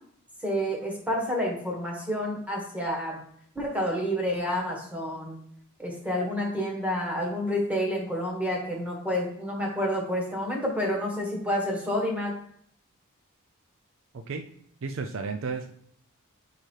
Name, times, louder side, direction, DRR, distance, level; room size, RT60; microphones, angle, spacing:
voice 1, 0.4-3.2 3.5-5.4 5.8-12.3, equal, 5° right, -1 dB, 1.5 m, -29 dB
voice 2, 14.1-14.5 14.8-15.7, right 4 dB, 60° right, 7 dB, 0.4 m, -33 dB
5.0 x 4.6 x 4.6 m, 0.66 s
head